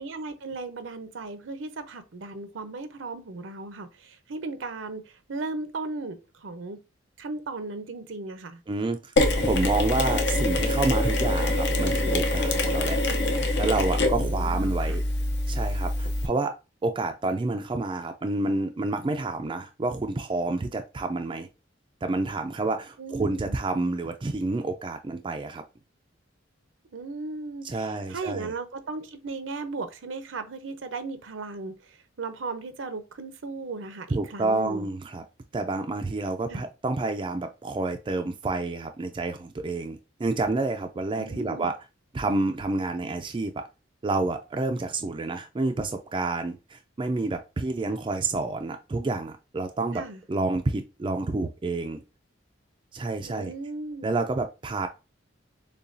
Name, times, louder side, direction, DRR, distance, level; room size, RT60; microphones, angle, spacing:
voice 1, 0.0-6.8 7.2-8.6 14.3-15.0 23.0-23.6 26.9-31.7 32.2-34.9 36.5-36.7 41.2-41.7 49.9-50.2 53.2-54.2, right 3 dB, 80° right, 0.7 m, -36 dB
voice 2, 8.7-9.1 9.4-13.0 13.6-15.0 15.5-16.5 16.8-21.5 22.0-25.6 27.6-28.5 34.1-35.2 35.5-41.8 42.1-43.7 44.0-50.0 50.3-52.0 52.9-53.5 54.0-54.9, right 3 dB, 25° right, 0.3 m, -29 dB
Mechanisms, 9.2-16.3, left 1 dB, 60° left, 0.7 m, -25 dB
6.7 x 2.3 x 2.6 m
head